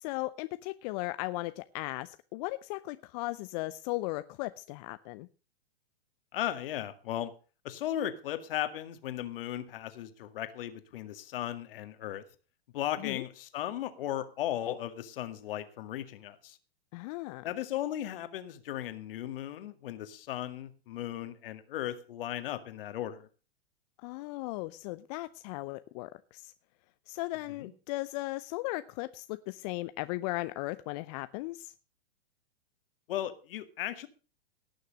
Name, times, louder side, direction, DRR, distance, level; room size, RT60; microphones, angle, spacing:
voice 1, 0.0-5.3 13.0-13.2 16.9-17.5 24.0-26.5 27.1-31.7, left 20 dB, 40° left, 13 dB, 0.6 m, -37 dB
voice 2, 6.3-7.3 7.6-12.2 12.7-16.6 17.4-23.3 27.6-27.7 33.1-34.1, left 12 dB, 60° left, 10 dB, 2.0 m, -36 dB
18.0 x 6.6 x 6.4 m, 0.36 s
hypercardioid pair, 115°, 32 cm